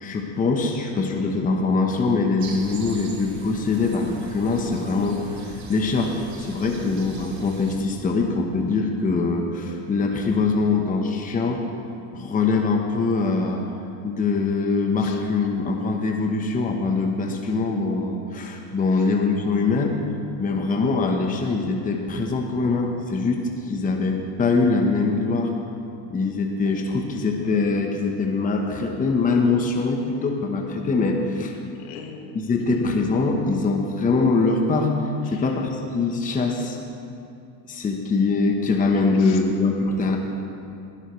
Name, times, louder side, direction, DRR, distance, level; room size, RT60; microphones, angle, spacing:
voice 1, 0.0-11.6 12.1-13.6 14.0-20.0 20.4-23.4 23.6-25.5 26.1-31.6 32.3-34.9 35.3-36.8 37.7-40.2, left 3 dB, 15° left, 2 dB, 0.9 m, -23 dB
sound 1, 2.4-7.8, right 3 dB, 35° right, 2.3 m, -40 dB
voice 2, 31.8-32.4 32.7-32.9 35.3-35.5 39.2-39.4, left 6 dB, 70° left, 3 dB, 1.8 m, -41 dB
19.5 x 11.5 x 3.2 m, 2.6 s
supercardioid pair, 125°, 49 cm